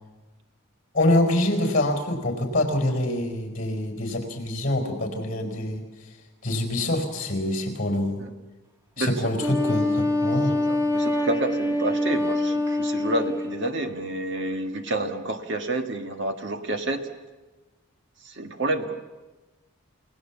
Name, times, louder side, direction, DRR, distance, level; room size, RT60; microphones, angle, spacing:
voice 1, 0.9-5.8 6.4-8.2 9.0-10.6, left 1 dB, 40° left, 5 dB, 4.5 m, -25 dB
Wind instrument woodwind instrument, 9.4-13.7, left 1 dB, 15° right, 1.6 m, -25 dB
voice 2, 10.7-17.1 18.2-19.0, right 1 dB, 55° right, 5 dB, 1.6 m, -29 dB
29.5 x 18.5 x 7.2 m, 1.2 s
head